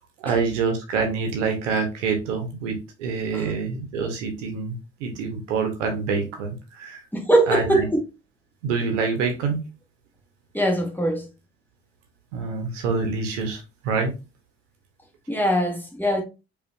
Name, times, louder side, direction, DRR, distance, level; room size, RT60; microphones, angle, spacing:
voice 1, 0.2-7.0 7.5-7.9 8.6-9.6 12.3-14.1, right 5 dB, 80° right, 0.8 m, -26 dB
voice 2, 7.1-8.0 10.5-11.3 15.3-16.2, right 1 dB, 5° left, 1.2 m, -21 dB
5.0 x 2.5 x 2.4 m
figure-of-eight pair, 45°, 37 cm